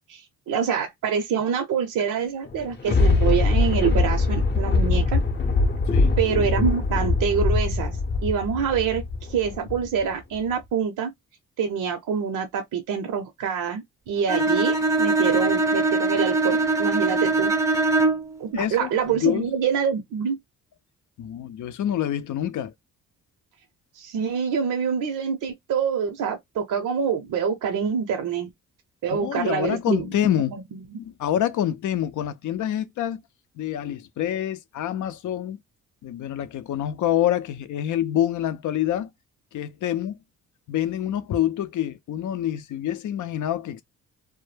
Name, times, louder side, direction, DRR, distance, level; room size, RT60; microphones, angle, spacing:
voice 1, 0.5-5.2 6.2-9.0 9.3-11.1 11.6-17.5 18.4-20.4 23.9-28.5 29.0-30.1 30.3-30.6 30.9-31.0, right 7 dB, 65° right, 0.7 m, -26 dB
Thunder, 2.5-10.0 10.5-10.6, left 3 dB, 30° left, 0.7 m, -22 dB
Bowed string instrument, 14.3-18.4, right 3 dB, 10° right, 0.6 m, -22 dB
voice 2, 18.5-19.5 21.2-22.7 29.1-30.6 31.0-33.2 33.6-35.6 36.0-39.1 39.5-40.2 40.7-43.8, left 11 dB, 65° left, 0.5 m, -26 dB
2.2 x 2.1 x 3.1 m
cardioid pair, 85°, 33 cm